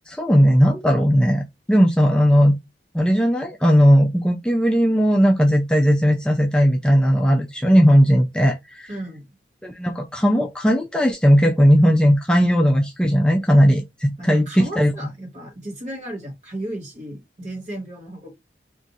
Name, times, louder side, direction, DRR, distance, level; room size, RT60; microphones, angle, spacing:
voice 1, 0.1-2.6 2.9-8.9 9.6-14.9, equal, 5° left, 0.4 m, -17 dB
voice 2, 8.9-9.3 14.2-18.3, right 1 dB, 45° right, 1.4 m, -34 dB
2.6 x 2.4 x 4.0 m
head